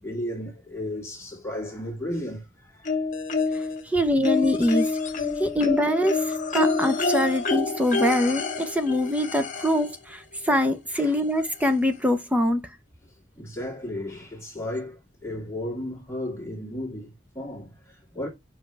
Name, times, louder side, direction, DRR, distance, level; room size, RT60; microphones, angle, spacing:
voice 1, 0.0-2.9 10.9-11.2 13.4-18.3, left 1 dB, 15° left, 2.1 m, -34 dB
sound 1, 2.8-3.8 4.2-9.9 11.1-11.2 11.6-11.7, left 4 dB, 45° left, 1.4 m, -27 dB
voice 2, 3.8-4.9 5.4-12.6, left 1 dB, 10° right, 0.7 m, -24 dB
8.0 x 5.6 x 3.3 m
head